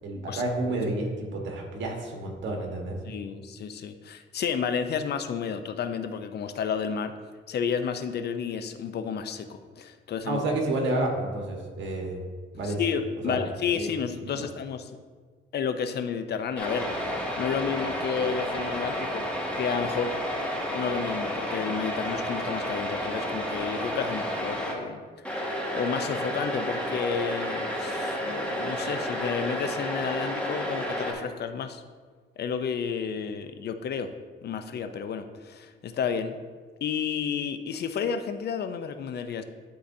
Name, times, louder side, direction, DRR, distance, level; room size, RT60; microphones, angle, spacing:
voice 1, 0.0-3.0 10.3-12.3 12.5-12.8 13.2-13.4 13.7-13.9 14.2-14.5, right 2 dB, 65° right, 1 dB, 1.5 m, -30 dB
voice 2, 3.1-7.1 7.5-10.4 12.6-14.9 15.5-20.2 20.7-25.0 25.4-31.8 32.4-34.1 34.4-36.4 36.8-39.4, left 7 dB, 55° left, 8 dB, 0.6 m, -31 dB
sound 1, 16.6-24.7 25.2-31.1, equal, 5° left, 1.6 m, -31 dB
11.5 x 3.9 x 2.7 m, 1.5 s
cardioid pair, 90°, 20 cm